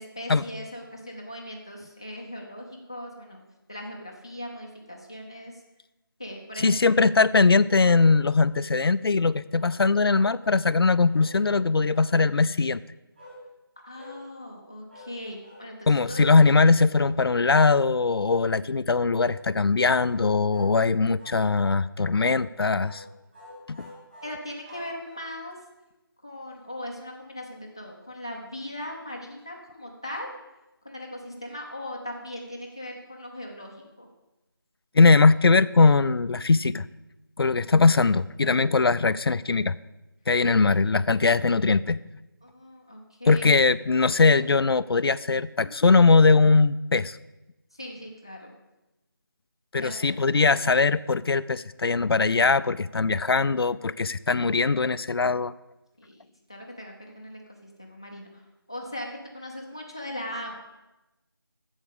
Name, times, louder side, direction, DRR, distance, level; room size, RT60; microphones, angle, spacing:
voice 1, 0.0-3.4 3.7-5.6 6.2-6.9 13.8-15.8 16.1-16.2 24.2-25.6 26.2-30.3 30.8-34.1 40.5-40.6 42.4-43.5 47.7-48.5 49.8-50.6 56.0-58.4 58.7-60.5, left 1 dB, 10° left, -1 dB, 0.5 m, -39 dB
voice 2, 6.6-12.8 15.9-23.0 23.7-23.9 34.9-36.9 37.4-39.8 40.3-42.0 43.3-47.2 49.7-55.5, left 4 dB, 90° left, 15 dB, 0.4 m, -21 dB
sound 1, 7.8-8.6 9.6-10.6 11.1-12.1 13.1-13.4 13.9-14.2 14.9-15.1 15.4-15.7 16.0-16.3 16.9-17.1 17.4-17.7 18.2-18.5 19.1-19.4 19.9-20.2 20.5-20.8 21.2-21.8 22.1-22.4 22.8-23.0 23.3-25.4, left 1 dB, 25° right, 3.4 m, -48 dB
8.3 x 7.2 x 7.1 m, 1.0 s
figure-of-eight pair, 180°, 12 cm